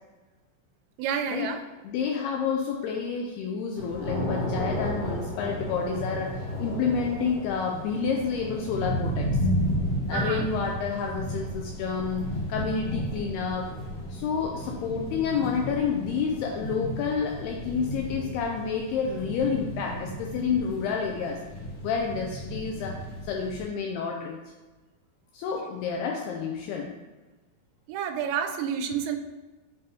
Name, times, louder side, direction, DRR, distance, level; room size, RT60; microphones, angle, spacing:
voice 1, 1.0-1.6 10.1-10.5 27.9-29.2, right 8 dB, 90° right, 6 dB, 2.8 m, -29 dB
voice 2, 1.8-9.3 10.1-12.2 12.5-13.8 14.1-21.4 21.8-22.9 23.2-24.4 25.3-26.9, left 6 dB, 85° left, 1 dB, 2.3 m, -29 dB
sound 1, 3.7-23.6, equal, 65° left, 1.7 m, -33 dB
8.8 x 3.9 x 2.7 m, 1.2 s
omnidirectional pair, 5.0 m